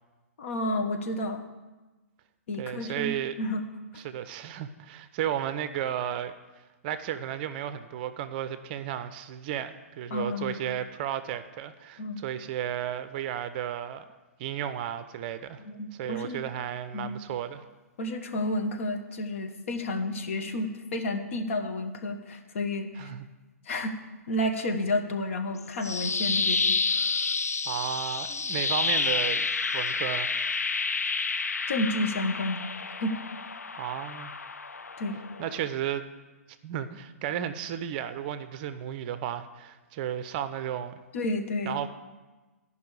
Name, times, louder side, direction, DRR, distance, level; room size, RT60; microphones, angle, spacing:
voice 1, 0.4-1.4 2.5-3.6 10.1-10.6 12.0-12.2 15.6-16.4 16.9-17.2 18.0-23.1 23.7-23.9 24.3-27.2 31.7-32.7 33.0-33.1 35.0-35.2 41.1-41.8, left 1 dB, 55° left, 5 dB, 1.1 m, -31 dB
voice 2, 2.6-3.3 4.0-6.3 6.8-14.1 14.4-15.6 16.0-17.6 23.0-23.3 27.7-29.5 29.7-30.3 33.8-34.3 35.4-36.0 36.6-41.0 41.7-41.9, right 10 dB, 40° right, 11 dB, 0.5 m, -33 dB
sound 1, 25.6-35.7, left 4 dB, 85° left, 0.4 m, -29 dB
13.5 x 5.4 x 4.8 m, 1.2 s
figure-of-eight pair, 120°, 8 cm